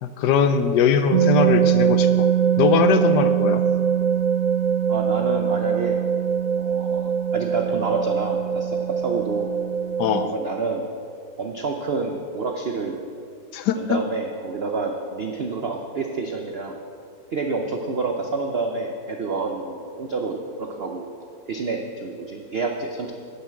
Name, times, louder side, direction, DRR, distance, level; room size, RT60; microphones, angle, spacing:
voice 1, 0.0-2.3 2.6-3.6 10.0-10.3 13.5-14.0, left 7 dB, 70° left, 10 dB, 1.1 m, -21 dB
sound 1, 1.1-10.2, right 8 dB, 65° right, 0.8 m, -22 dB
voice 2, 4.9-6.0 6.6-9.5 10.2-10.9 11.4-13.0 13.8-16.8 17.3-21.1 21.5-23.1, right 3 dB, 90° right, 3 dB, 0.5 m, -28 dB
9.7 x 7.2 x 7.5 m, 2.4 s
omnidirectional pair, 2.1 m